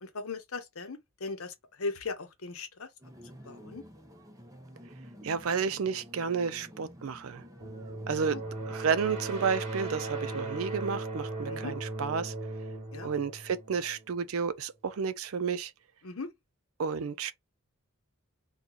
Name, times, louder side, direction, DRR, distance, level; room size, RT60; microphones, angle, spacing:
voice 1, 0.0-2.9 3.5-3.8 8.0-8.4 11.5-11.7 12.9-13.1 16.0-16.3, left 3 dB, 75° left, 0.8 m, -38 dB
sound 1, 3.0-11.1, equal, 15° right, 0.6 m, -52 dB
voice 2, 5.2-7.4 8.1-8.4 8.7-12.3 13.0-15.7 16.8-17.3, right 6 dB, 75° right, 0.4 m, -31 dB
sound 2, 7.6-14.3, right 2 dB, 30° right, 1.4 m, -37 dB
2.9 x 2.3 x 3.7 m
head